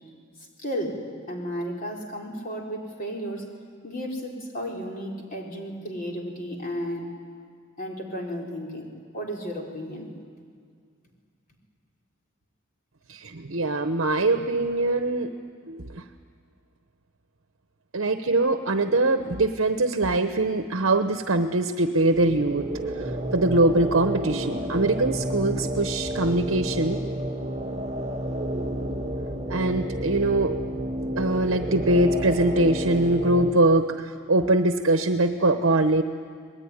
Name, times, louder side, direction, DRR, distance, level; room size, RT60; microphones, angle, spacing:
voice 1, 0.6-3.5 3.8-7.1 7.8-10.1, equal, 40° left, 0 dB, 4.2 m, -33 dB
voice 2, 13.1-15.3 15.7-16.0 17.9-22.7 23.0-27.0 29.5-30.5 31.2-36.0, right 2 dB, 70° right, 7 dB, 1.0 m, -23 dB
sound 1, 22.0-33.5, equal, 30° right, 1.8 m, -31 dB
25.5 x 20.5 x 9.9 m, 2.1 s
head